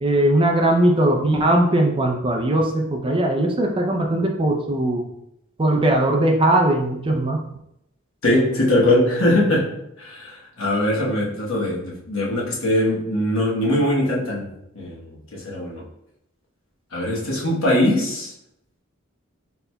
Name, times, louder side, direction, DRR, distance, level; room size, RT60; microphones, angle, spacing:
voice 1, 0.0-5.0 5.6-7.5, right 1 dB, 25° right, 2 dB, 0.5 m, -19 dB
voice 2, 8.2-15.8 16.9-18.3, left 1 dB, 70° left, -4 dB, 1.1 m, -21 dB
4.3 x 3.9 x 2.2 m, 0.80 s
head